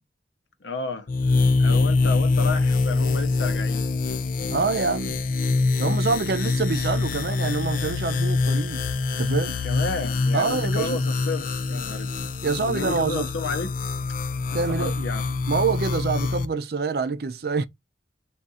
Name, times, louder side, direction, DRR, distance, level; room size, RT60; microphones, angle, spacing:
voice 1, 0.6-3.9 9.6-12.3 12.7-13.8 14.5-15.3, left 3 dB, 90° left, 0.7 m, -32 dB
sound 1, 1.1-16.5, left 3 dB, 50° left, 0.4 m, -25 dB
voice 2, 4.4-5.2 5.8-8.8 9.2-9.6 10.3-11.0 12.4-13.3 14.5-15.1 15.5-17.7, right 4 dB, 60° right, 0.5 m, -26 dB
3.7 x 2.5 x 4.0 m
head